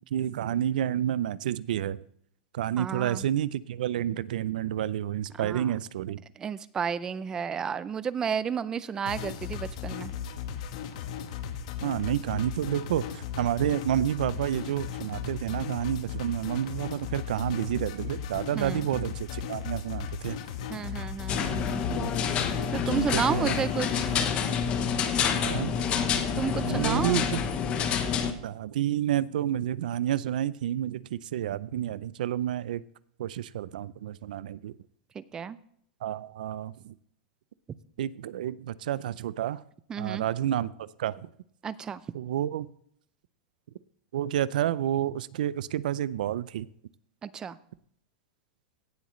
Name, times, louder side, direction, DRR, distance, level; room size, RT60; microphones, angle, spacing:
voice 1, 0.1-2.0 2.5-6.2 11.8-20.4 21.9-22.2 22.9-23.7 25.4-25.7 26.7-27.4 28.3-32.8 33.2-34.7 36.0-36.9 38.0-39.6 40.0-41.1 42.1-42.7 44.1-46.7, right 11 dB, 80° right, 19 dB, 0.5 m, -30 dB
voice 2, 2.8-3.2 5.3-5.7 6.4-10.1 18.5-18.9 20.7-21.8 22.7-24.1 26.4-27.2 35.1-35.6 39.9-40.2 41.6-42.0 47.2-47.6, right 7 dB, 15° right, 17 dB, 0.4 m, -32 dB
sound 1, 9.1-24.3, left 8 dB, 55° left, 1.2 m, -37 dB
sound 2, 21.3-28.3, left 7 dB, 25° left, 0.9 m, -28 dB
16.5 x 7.9 x 3.1 m, 0.67 s
supercardioid pair, 165°, 4 cm